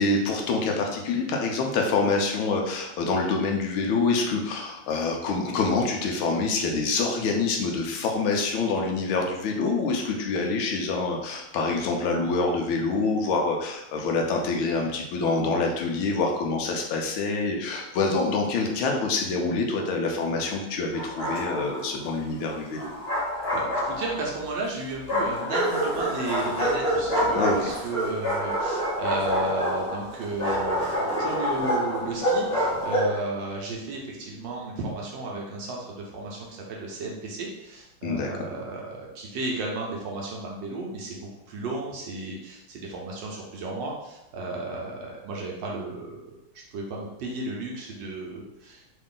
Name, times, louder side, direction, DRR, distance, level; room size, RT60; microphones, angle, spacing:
voice 1, 0.0-22.9 27.3-27.6 38.0-38.3, left 3 dB, 80° left, 1 dB, 1.4 m, -26 dB
Bark, 20.9-21.8 22.8-24.4 25.1-33.2, equal, 25° left, 1.5 m, -27 dB
voice 2, 23.5-41.2 41.5-46.3 46.7-48.8, right 2 dB, 70° right, -2 dB, 1.2 m, -33 dB
3.8 x 2.4 x 3.6 m, 0.89 s
omnidirectional pair, 2.3 m